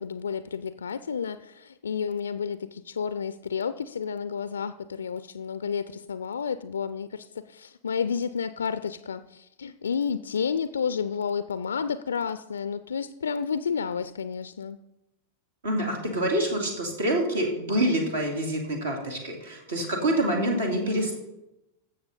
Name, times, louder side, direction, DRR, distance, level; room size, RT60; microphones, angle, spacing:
voice 1, 0.0-14.8, left 6 dB, 70° left, 13 dB, 0.3 m, -31 dB
voice 2, 15.6-21.2, right 1 dB, 65° right, 1 dB, 2.6 m, -26 dB
15.5 x 6.7 x 4.2 m, 0.91 s
figure-of-eight pair, 90°, 0 cm